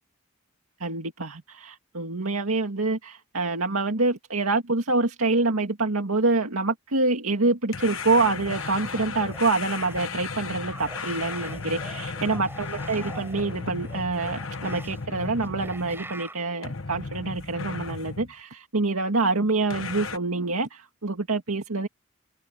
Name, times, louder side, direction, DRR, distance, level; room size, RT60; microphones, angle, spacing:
voice 1, 0.8-21.9, right 3 dB, 80° right, 2.0 m, -26 dB
sound 1, 7.7-16.2 16.6-18.3 19.7-20.2, left 4 dB, 65° left, 1.3 m, -35 dB
sound 2, 8.3-10.2 10.5-16.4, right 2 dB, 10° right, 4.2 m, -45 dB
open air
head